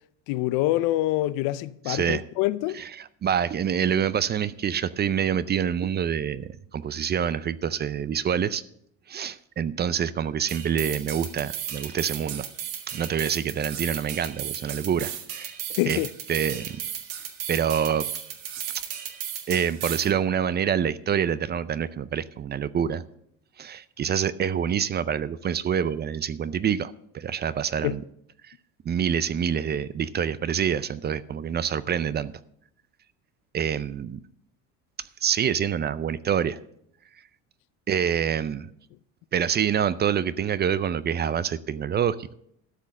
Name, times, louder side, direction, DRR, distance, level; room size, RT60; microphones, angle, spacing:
voice 1, 0.3-2.8 15.8-16.1 27.8-27.9, left 16 dB, 70° left, 0.6 m, -25 dB
voice 2, 1.9-2.2 2.8-8.6 9.1-12.5 12.9-15.5 15.9-16.0 16.3-16.8 17.5-18.1 19.5-23.0 23.6-28.0 28.4-28.5 28.8-32.3 33.5-34.2 35.2-36.6 37.9-38.7 39.3-42.3, right 8 dB, 30° right, 0.5 m, -26 dB
sound 1, 10.5-20.1, right 9 dB, 80° right, 1.7 m, -35 dB
12.5 x 6.1 x 6.5 m
supercardioid pair, 100°, 35 cm